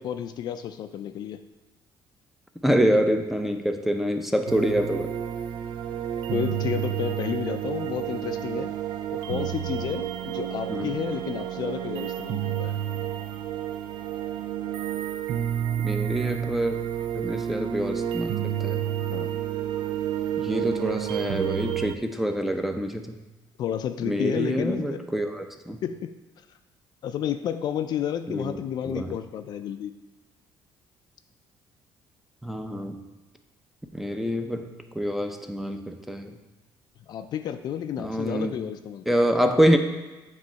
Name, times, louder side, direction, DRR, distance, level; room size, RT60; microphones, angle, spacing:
voice 1, 0.0-1.4 6.3-8.7 9.1-12.8 19.1-19.4 23.6-25.0 25.8-26.1 27.0-29.9 37.1-39.1, left 9 dB, 55° left, 9 dB, 0.4 m, -31 dB
voice 2, 2.6-5.1 10.7-10.9 15.8-16.8 17.1-18.3 18.6-18.8 20.4-23.2 24.1-25.8 28.3-28.6 28.8-29.1 32.4-33.0 33.9-34.7 35.0-36.3 38.0-38.5 39.1-39.8, equal, 5° right, 5 dB, 0.6 m, -26 dB
sound 1, 4.5-21.9, right 10 dB, 65° right, 0.4 m, -30 dB
7.9 x 3.1 x 5.6 m, 1.1 s
cardioid pair, 115°, 8 cm